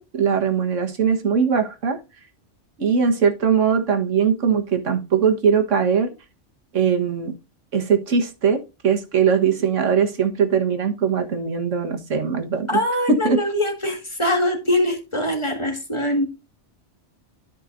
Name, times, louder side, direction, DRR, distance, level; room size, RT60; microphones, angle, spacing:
voice 1, 0.0-2.0 2.8-6.1 6.7-7.3 7.7-12.8 13.1-13.4, right 6 dB, 90° right, 5 dB, 1.7 m, -20 dB
voice 2, 12.7-16.3, left 1 dB, 25° left, 4 dB, 1.8 m, -23 dB
13.0 x 5.7 x 2.6 m, 0.27 s
omnidirectional pair, 1.2 m